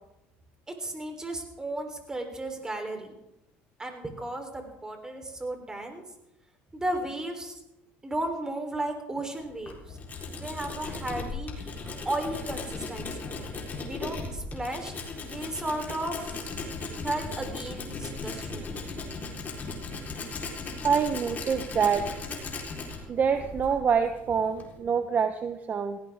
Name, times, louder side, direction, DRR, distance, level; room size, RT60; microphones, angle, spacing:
voice 1, 0.7-3.2 3.8-6.0 6.7-7.6 8.0-10.0 10.3-13.3 13.8-14.9 15.2-16.5 17.0-18.7, right 1 dB, 15° right, 4 dB, 3.7 m, -34 dB
Tools, 9.4-24.8, left 3 dB, 35° left, 4.1 m, -37 dB
voice 2, 20.8-22.1 23.1-26.0, right 6 dB, 35° right, 9 dB, 1.0 m, -26 dB
17.5 x 16.5 x 3.6 m, 0.88 s
supercardioid pair, 95°, 5 cm